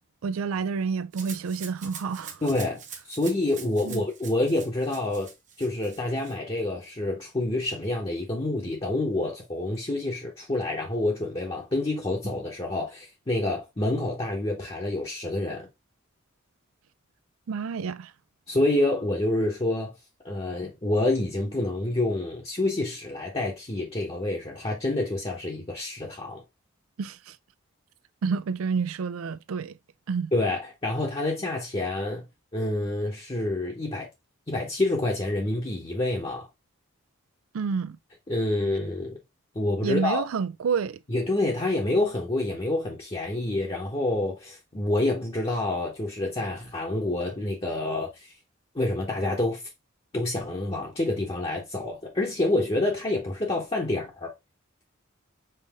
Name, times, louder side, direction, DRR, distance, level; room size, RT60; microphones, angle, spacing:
voice 1, 0.2-2.4 3.8-4.0 17.5-18.1 27.0-27.4 28.2-29.8 30.1-30.3 37.5-38.0 39.8-41.0, right 5 dB, 85° right, 0.4 m, -29 dB
Rattle (instrument), 1.1-6.4, right 7 dB, 35° right, 0.8 m, -44 dB
voice 2, 2.4-2.8 3.1-5.3 5.6-15.7 18.5-19.9 20.2-26.4 30.3-32.2 32.5-34.1 34.5-36.5 38.3-39.2 39.5-40.2 41.1-48.3 48.7-49.6 50.1-54.3, left 2 dB, 25° left, 0.9 m, -27 dB
5.5 x 2.6 x 3.4 m
head